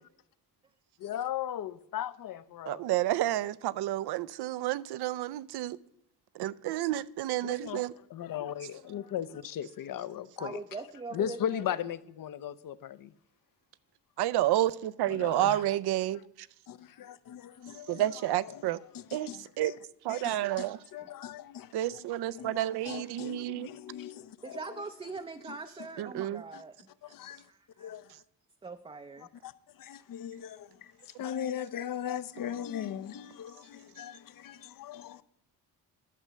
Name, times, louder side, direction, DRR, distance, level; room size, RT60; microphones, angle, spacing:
voice 1, 1.0-2.8 7.4-7.8 8.1-10.6 11.1-13.1 15.1-15.6 16.7-18.6 18.9-19.8 20.1-24.8 25.5-25.9 26.5-26.6 27.0-27.5 27.8-28.1 29.4-35.2, left 10 dB, 55° left, 0.7 m, -38 dB
voice 2, 2.7-5.8 6.3-7.9 14.2-16.5 17.9-18.8 19.1-19.3 19.6-19.7 20.0-20.8 21.7-23.7 26.0-26.4, right 14 dB, 75° right, 0.6 m, -30 dB
voice 3, 10.4-11.6 24.4-26.7 27.3-27.9 28.6-29.3, right 3 dB, 15° right, 0.4 m, -42 dB
11.0 x 5.6 x 7.4 m
cardioid pair, 105°, 39 cm